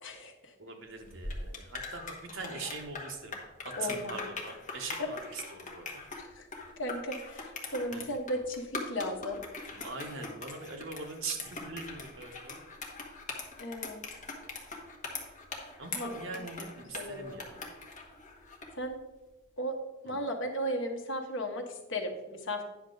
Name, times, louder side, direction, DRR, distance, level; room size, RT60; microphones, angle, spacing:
voice 1, 0.0-0.5 3.8-4.2 5.0-5.1 6.2-6.5 6.8-9.4 13.6-14.0 16.0-16.1 16.9-17.4 18.7-19.0 19.6-19.8 20.0-22.6, equal, 60° left, 4 dB, 1.1 m, -35 dB
voice 2, 0.6-3.3 3.6-5.9 7.9-8.0 9.7-12.6 15.8-17.7 20.1-20.2, right 4 dB, 60° right, 3 dB, 1.1 m, -42 dB
sound 1, 1.0-18.8, left 3 dB, 35° left, 1.3 m, -42 dB
9.6 x 6.3 x 3.9 m, 1.1 s
head